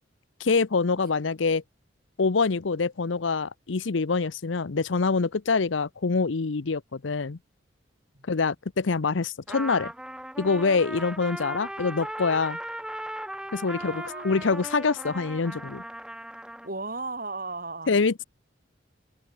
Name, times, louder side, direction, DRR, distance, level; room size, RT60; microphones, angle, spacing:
voice 1, 0.4-1.6 2.2-7.4 8.3-9.9 10.4-12.6 13.5-15.8 17.9-18.2, left 4 dB, 80° left, 0.7 m, -25 dB
Trumpet, 9.5-16.7, right 1 dB, 5° right, 1.8 m, -37 dB
voice 2, 13.7-14.5 16.6-18.0, right 3 dB, 45° right, 4.6 m, -36 dB
open air
head